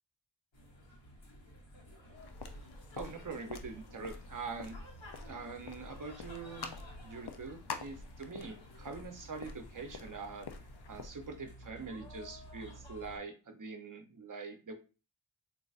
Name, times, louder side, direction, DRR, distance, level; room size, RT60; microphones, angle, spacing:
sound 1, 0.5-13.2, equal, 80° left, 1.1 m, -53 dB
sound 2, 2.1-11.1, left 4 dB, 60° left, 0.5 m, -48 dB
voice 1, 3.0-4.8 5.2-6.8 7.0-10.5 10.9-14.7, right 4 dB, 45° right, 5 dB, 0.6 m, -44 dB
3.8 x 2.6 x 2.4 m, 0.34 s
wide cardioid pair, 45°, 44 cm